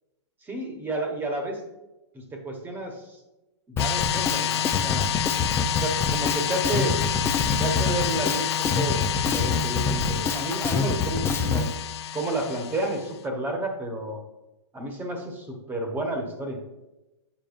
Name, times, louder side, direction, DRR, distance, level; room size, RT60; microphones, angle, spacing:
voice 1, 0.4-1.6 2.1-3.2 3.7-5.1 5.7-7.0 7.6-11.7 12.1-14.2 14.7-16.6, right 2 dB, 15° right, 3 dB, 1.2 m, -31 dB
sound 1, 3.8-13.1, left 9 dB, 65° left, 0.5 m, -28 dB
Drum kit, 3.8-11.7, left 5 dB, 15° left, 0.5 m, -26 dB
8.7 x 7.1 x 2.5 m, 0.99 s
hypercardioid pair, 145°, 15 cm